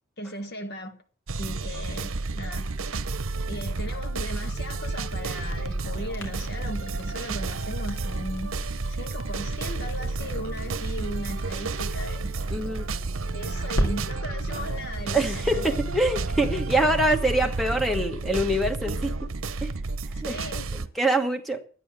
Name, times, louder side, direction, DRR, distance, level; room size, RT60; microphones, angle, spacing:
voice 1, 0.2-1.0 1.4-2.7 3.5-12.3 13.3-15.7 20.2-20.7, left 1 dB, 50° left, 1.8 m, -37 dB
sound 1, 1.3-20.9, right 3 dB, 70° right, 0.8 m, -31 dB
Crackle, 4.3-13.9, right 1 dB, 70° left, 3.6 m, -37 dB
voice 2, 12.5-12.9 15.1-19.1 19.6-19.7 20.2-20.4 20.7-21.6, right 1 dB, ahead, 1.2 m, -25 dB
12.0 x 9.5 x 7.4 m
head